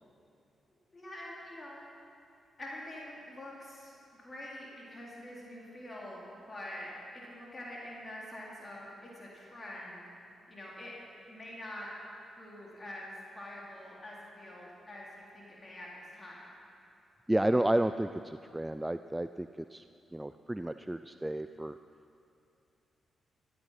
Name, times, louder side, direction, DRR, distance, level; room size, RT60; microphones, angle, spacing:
voice 1, 0.9-1.9 2.6-6.9 7.2-10.1 10.5-10.9 11.3-11.9 12.3-16.5, left 1 dB, 35° left, -4 dB, 3.8 m, -45 dB
voice 2, 17.3-19.8 20.1-21.8, right 1 dB, 15° right, 10 dB, 0.4 m, -31 dB
14.0 x 12.0 x 5.7 m, 2.8 s
hypercardioid pair, 40°, 0 cm